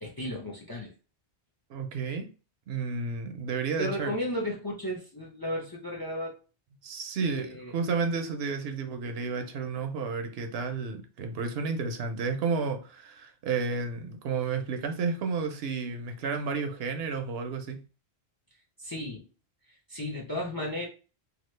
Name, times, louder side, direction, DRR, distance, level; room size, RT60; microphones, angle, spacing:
voice 1, 0.0-0.9 3.8-6.4 7.2-7.7 18.8-19.3 19.7-20.8, left 1 dB, 25° left, 0 dB, 0.5 m, -34 dB
voice 2, 1.7-2.3 2.7-4.1 6.8-17.8, right 5 dB, 70° right, 6 dB, 0.8 m, -31 dB
2.8 x 2.3 x 3.1 m, 0.34 s
omnidirectional pair, 1.1 m